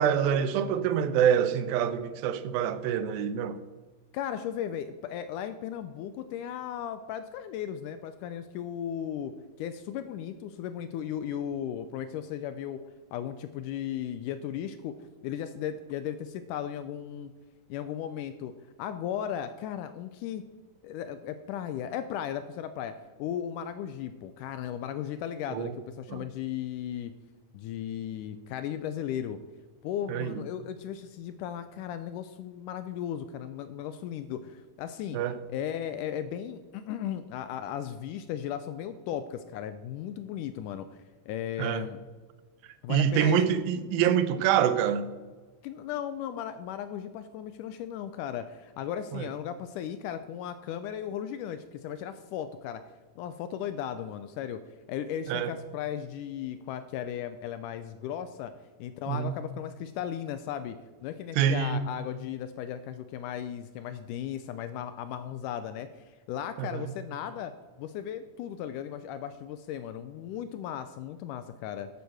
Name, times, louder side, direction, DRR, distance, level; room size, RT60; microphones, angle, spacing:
voice 1, 0.0-3.6 25.5-25.7 26.1-26.2 30.1-30.3 35.1-35.3 41.6-41.8 42.9-45.1 49.1-49.3 55.3-55.5 59.1-59.3 61.4-61.8 66.6-66.9, right 8 dB, 90° right, 2.6 m, -26 dB
voice 2, 4.1-12.8 13.1-15.0 15.2-17.3 17.7-18.5 18.8-20.4 20.8-27.1 27.5-29.4 29.8-35.2 35.5-41.0 41.3-42.0 42.8-43.6 45.6-52.8 53.2-54.6 54.9-58.5 58.8-67.5 67.8-71.9, left 9 dB, 80° left, 1.9 m, -36 dB
11.5 x 8.0 x 6.4 m
omnidirectional pair, 4.1 m